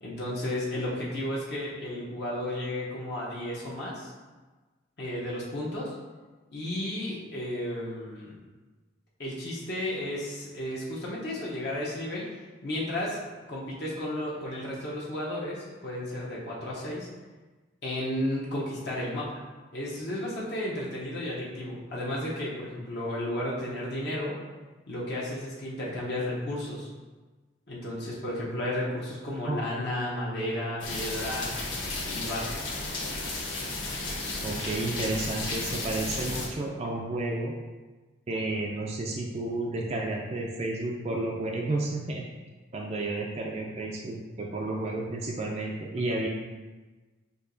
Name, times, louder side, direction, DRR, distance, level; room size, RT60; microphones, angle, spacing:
voice 1, 0.0-4.1 5.0-5.9 6.5-8.4 9.2-12.2 12.6-13.2 13.5-17.1 17.8-19.4 19.7-24.3 24.9-26.9 27.7-31.5 32.0-32.6, left 1 dB, 55° left, -6 dB, 0.8 m, -33 dB
sound 1, 30.8-36.5, left 2 dB, 75° left, 1.1 m, -33 dB
voice 2, 34.4-37.5 38.3-42.2 42.7-46.3, right 2 dB, 30° right, -1 dB, 0.3 m, -31 dB
6.3 x 2.8 x 2.6 m, 1.3 s
head